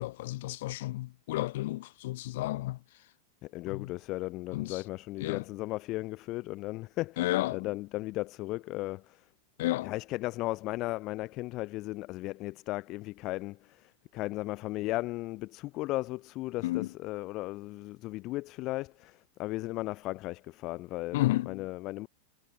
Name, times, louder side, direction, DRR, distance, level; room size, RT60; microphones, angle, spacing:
voice 1, 0.0-2.8 3.7-3.9 4.5-4.8 5.2-5.4 7.2-7.7 9.6-9.9 16.6-16.9 21.1-21.6, left 17 dB, 65° left, 1.7 m, -32 dB
voice 2, 3.4-9.2 9.8-21.2 21.5-22.1, left 19 dB, 45° left, 0.7 m, -36 dB
hypercardioid pair, 110°, 0 cm